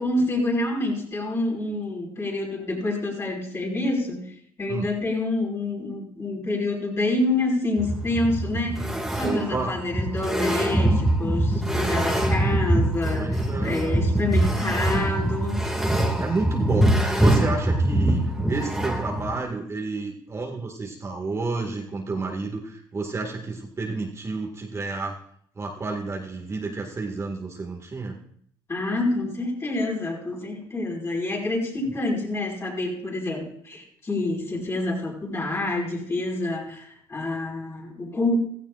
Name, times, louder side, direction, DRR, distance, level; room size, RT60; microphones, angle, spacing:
voice 1, 0.0-4.2 4.6-8.8 9.2-13.3 13.6-15.6 28.7-38.4, left 2 dB, 30° left, -2 dB, 5.1 m, -27 dB
sound 1, 7.8-19.4, right 1 dB, ahead, 2.2 m, -23 dB
voice 2, 9.2-9.7 13.1-14.1 16.2-25.2 25.6-28.2 31.8-31.9, right 3 dB, 30° right, 0 dB, 1.9 m, -30 dB
16.0 x 14.5 x 2.5 m, 0.65 s
supercardioid pair, 80°, 10 cm